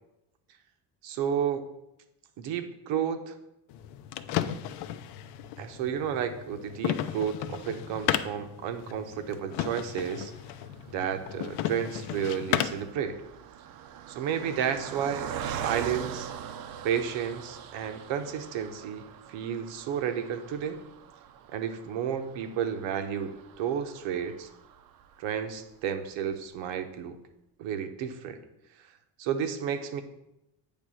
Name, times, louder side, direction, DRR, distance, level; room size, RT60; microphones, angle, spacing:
voice 1, 1.0-1.7 2.4-3.4 5.6-10.3 10.9-13.2 14.1-16.3 16.8-20.8 21.5-24.5 25.2-27.2 27.6-28.4 29.2-30.0, right 8 dB, 80° right, 8 dB, 1.0 m, -32 dB
sound 1, 3.7-12.9, left 11 dB, 65° left, 0.6 m, -34 dB
Car passing by, 10.1-25.6 26.1-26.2 26.5-26.6, right 8 dB, 50° right, 0.6 m, -42 dB
8.5 x 3.4 x 6.2 m, 0.87 s
cardioid pair, 135°, 44 cm